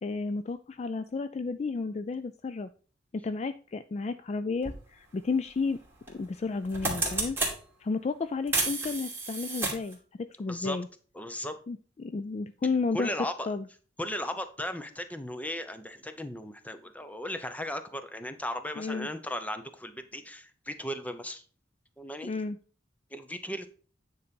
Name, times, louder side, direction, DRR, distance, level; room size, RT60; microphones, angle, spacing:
voice 1, 0.0-2.7 3.1-5.8 6.1-7.4 7.8-10.9 11.7-13.1 13.5-13.7 18.8-19.1 22.2-22.6, left 4 dB, 35° left, 12 dB, 0.3 m, -32 dB
sound 1, 4.6-4.8 6.1-6.3 6.6-7.5 8.5-9.9, right 3 dB, 10° right, 2.5 m, -30 dB
voice 2, 10.5-10.8 11.1-11.6 12.9-13.5 14.0-21.4 22.0-22.3 23.1-23.7, left 1 dB, 10° left, 9 dB, 0.7 m, -36 dB
9.4 x 4.1 x 5.2 m, 0.40 s
head